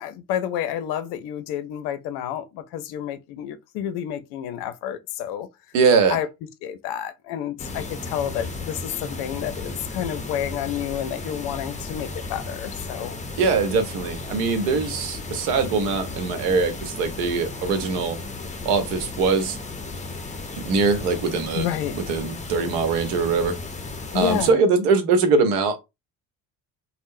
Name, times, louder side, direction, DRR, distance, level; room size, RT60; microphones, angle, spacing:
voice 1, 0.0-5.5 6.1-6.3 6.6-13.2 21.5-22.0 24.1-24.6, left 10 dB, 55° left, 0.6 m, -29 dB
voice 2, 5.7-6.2 13.4-18.2 18.6-19.6 20.7-21.7 21.9-23.5 24.1-25.8, right 4 dB, 65° right, 0.9 m, -22 dB
sound 1, 7.6-24.5, left 3 dB, 15° left, 0.7 m, -35 dB
3.5 x 2.1 x 2.6 m
figure-of-eight pair, 55°, 48 cm